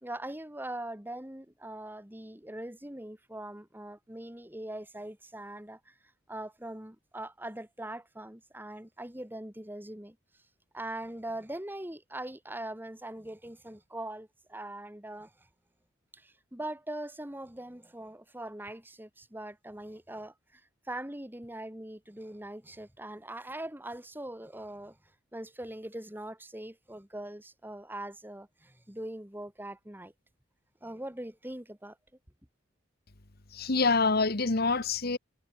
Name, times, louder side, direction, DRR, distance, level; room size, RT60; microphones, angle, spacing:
voice 1, 0.0-5.9 6.3-10.2 10.7-15.3 16.1-20.6 20.9-25.0 25.3-30.1 30.8-32.0, right 1 dB, 10° right, 2.2 m, -41 dB
voice 2, 33.5-35.2, left 3 dB, 50° left, 1.4 m, -26 dB
head